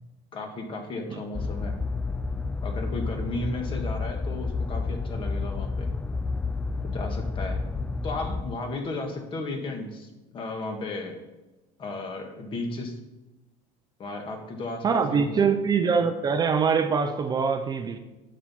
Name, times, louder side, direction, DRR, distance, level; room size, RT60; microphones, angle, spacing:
voice 1, 0.3-1.7 2.6-5.9 6.8-7.6 8.0-10.1 10.3-11.2 11.8-12.9 14.0-15.5 15.8-16.0, left 2 dB, 35° left, 4 dB, 1.8 m, -34 dB
sound 1, 1.3-8.4, left 3 dB, 10° left, 0.3 m, -30 dB
voice 2, 14.8-18.0, right 6 dB, 25° right, 7 dB, 0.6 m, -24 dB
10.0 x 7.4 x 4.3 m, 1.1 s
cardioid pair, 145°, 15 cm